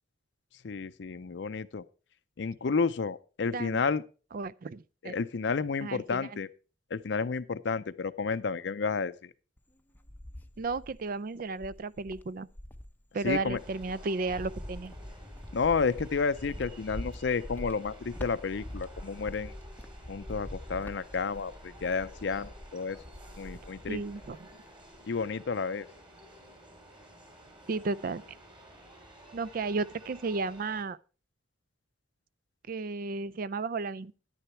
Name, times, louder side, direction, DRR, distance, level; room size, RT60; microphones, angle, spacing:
voice 1, 0.6-1.8 2.4-4.0 5.0-6.5 6.9-9.3 13.2-13.6 15.5-19.5 20.1-23.0 23.4-24.0 25.1-25.9, left 5 dB, 65° left, 0.5 m, -31 dB
voice 2, 4.3-5.1 5.8-6.3 10.6-12.5 13.1-14.9 23.9-24.5 27.7-28.2 29.3-31.0 32.7-34.1, right 3 dB, 50° right, 0.4 m, -33 dB
Cricket, 9.6-11.1 11.6-24.5 24.8-25.4, left 1 dB, 10° left, 0.6 m, -44 dB
sound 1, 13.6-30.8, right 1 dB, 25° right, 2.8 m, -53 dB
10.0 x 9.9 x 4.4 m
head